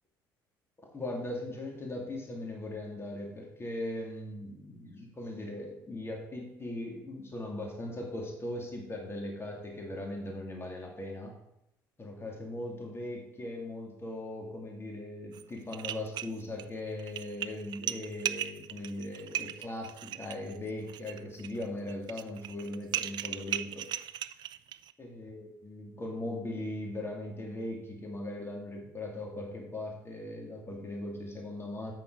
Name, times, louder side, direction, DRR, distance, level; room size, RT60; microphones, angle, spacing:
voice 1, 0.9-11.3 12.0-23.9 25.0-31.9, left 1 dB, 20° left, 1 dB, 2.5 m, -39 dB
sound 1, 15.3-15.4 15.7-16.6 17.0-24.9, right 12 dB, 40° right, 0.4 m, -37 dB
8.4 x 6.1 x 4.9 m, 0.82 s
figure-of-eight pair, 55°, 11 cm